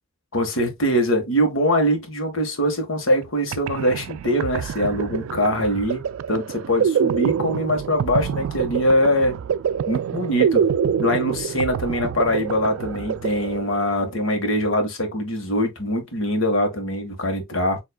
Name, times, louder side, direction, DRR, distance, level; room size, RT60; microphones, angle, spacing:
voice 1, 0.3-9.4 9.9-10.6 11.0-17.8, equal, 70° left, 1.5 m, -23 dB
sound 1, 3.2-3.3 3.5-14.1, right 7 dB, 75° right, 0.3 m, -26 dB
6.9 x 3.0 x 2.3 m
head